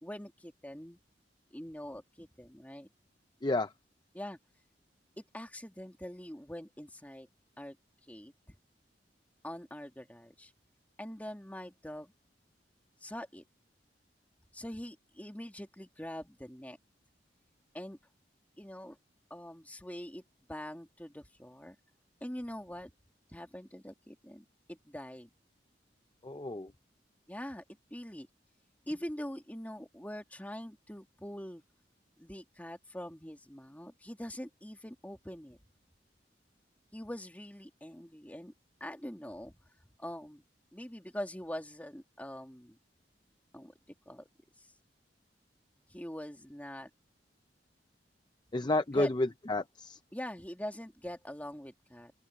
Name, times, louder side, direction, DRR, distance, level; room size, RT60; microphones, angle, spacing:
voice 1, 0.0-1.0 1.5-2.9 4.1-4.4 5.2-7.3 7.6-7.8 8.1-8.6 9.4-10.5 11.0-12.1 13.0-13.4 14.5-16.8 17.7-18.0 18.6-19.0 19.3-20.2 20.5-21.8 22.2-22.9 23.3-25.3 27.3-27.6 27.9-28.3 28.9-31.6 32.2-35.6 36.9-38.5 38.8-39.5 40.0-40.4 40.7-42.8 43.5-43.7 44.1-44.3 44.6-44.7 45.9-46.9 48.9-49.1 50.1-52.1, equal, 10° left, 2.4 m, -43 dB
voice 2, 26.2-26.7 48.5-50.0, left 2 dB, 25° left, 0.6 m, -31 dB
open air
head